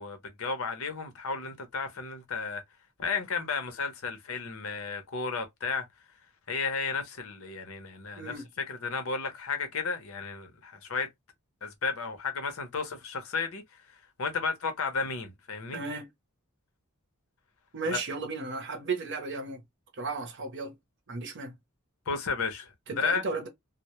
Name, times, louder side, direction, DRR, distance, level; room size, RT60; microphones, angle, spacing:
voice 1, 0.0-2.6 3.0-5.8 6.5-8.3 8.7-11.1 11.6-13.6 14.2-15.8 17.9-18.0 22.1-23.2, left 5 dB, 70° left, 0.7 m, -33 dB
voice 2, 8.2-8.5 15.7-16.1 17.7-19.6 20.0-20.8 21.1-21.5 22.9-23.5, right 3 dB, 55° right, 0.7 m, -34 dB
2.1 x 2.0 x 2.8 m
head